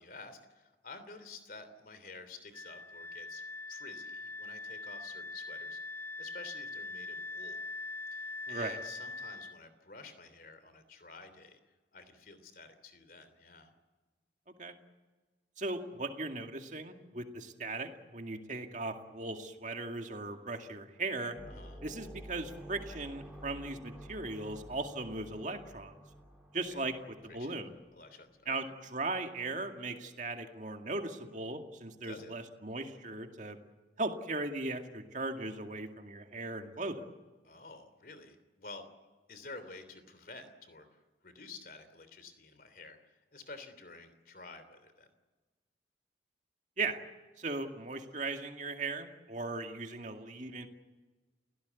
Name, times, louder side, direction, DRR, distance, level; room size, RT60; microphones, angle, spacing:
voice 1, 0.0-3.4 3.7-7.6 8.1-11.6 11.9-13.7 21.5-21.8 26.7-26.9 27.3-27.5 27.9-28.7 32.0-32.3 37.4-38.9 39.3-40.9 41.2-45.1, left 3 dB, 50° left, 11 dB, 3.2 m, -51 dB
Wind instrument woodwind instrument, 2.5-9.6, left 3 dB, 15° left, 0.8 m, -42 dB
voice 2, 8.5-8.8 14.6-14.7 15.6-21.3 21.8-25.9 26.5-26.9 27.3-27.7 28.5-28.7 28.9-33.6 34.0-37.0 46.8-47.0 47.4-50.7, right 3 dB, 45° right, 5 dB, 2.2 m, -38 dB
sound 1, 21.3-27.8, equal, 5° right, 4.9 m, -50 dB
29.5 x 17.0 x 8.3 m, 1.3 s
head